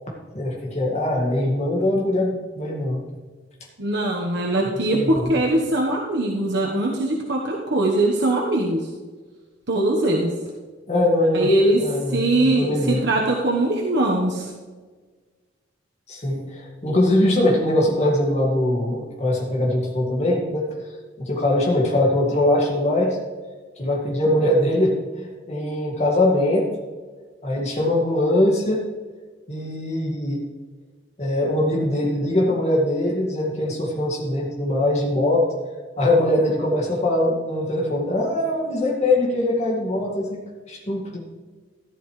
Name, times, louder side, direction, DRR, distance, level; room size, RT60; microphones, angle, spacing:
voice 1, 0.3-3.0 4.9-5.3 10.9-11.5 11.8-13.1 16.1-20.7 21.2-23.2 23.8-26.7 27.4-28.8 29.5-30.4 31.2-35.4 36.0-41.2, left 1 dB, 35° left, -2 dB, 2.0 m, -22 dB
voice 2, 3.8-8.8 9.7-10.3 11.3-11.8 12.1-14.5, right 1 dB, 65° right, -2 dB, 1.2 m, -21 dB
14.0 x 11.5 x 3.3 m, 1.4 s
head